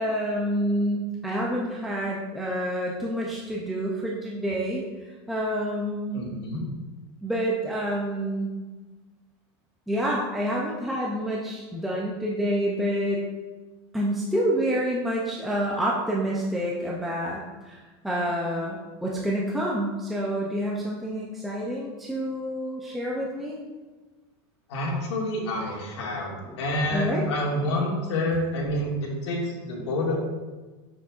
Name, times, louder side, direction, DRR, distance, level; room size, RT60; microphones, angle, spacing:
voice 1, 0.0-4.9 5.3-6.3 7.2-8.5 9.9-13.2 13.9-17.8 18.0-23.6 26.5-26.6 26.9-27.2, equal, ahead, -4 dB, 0.4 m, -28 dB
voice 2, 6.1-6.6 24.7-30.1, left 1 dB, 80° left, -3 dB, 2.1 m, -28 dB
7.0 x 6.5 x 2.4 m, 1.3 s
supercardioid pair, 180°, 14 cm